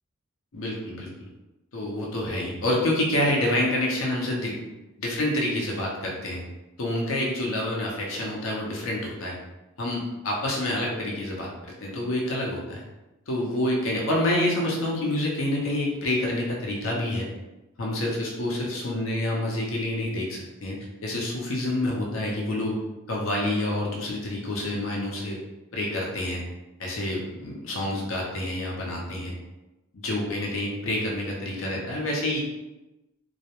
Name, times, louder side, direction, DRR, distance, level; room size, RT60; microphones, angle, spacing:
voice 1, 0.5-1.3 1.7-4.7 5.0-6.4 6.8-9.4 9.8-11.5 11.8-12.8 13.3-17.3 17.8-22.8 23.1-25.4 25.7-26.4 26.8-29.3 29.9-32.4, left 1 dB, 75° left, -2 dB, 0.6 m, -28 dB
2.3 x 2.1 x 2.8 m, 1.0 s
head